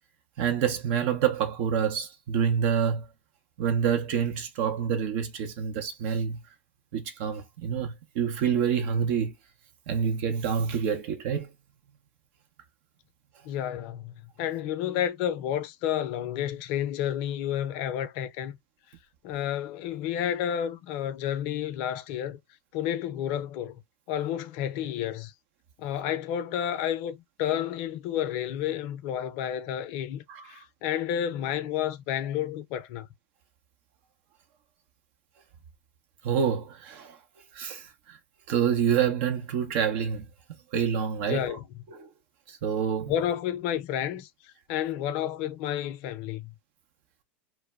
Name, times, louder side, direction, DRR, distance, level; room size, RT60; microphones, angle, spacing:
voice 1, 0.4-3.1 3.6-6.4 6.9-9.3 9.9-11.5 30.3-30.4 36.2-37.2 37.5-38.2 38.5-40.2 40.7-41.6 41.9-42.1 42.5-43.1, right 7 dB, 55° right, 0.6 m, -27 dB
voice 2, 13.4-18.6 19.2-22.4 22.7-23.8 24.1-25.3 25.8-33.1 41.3-41.6 43.1-46.5, left 10 dB, 55° left, 0.5 m, -31 dB
2.1 x 2.1 x 3.4 m
hypercardioid pair, 95°, 7 cm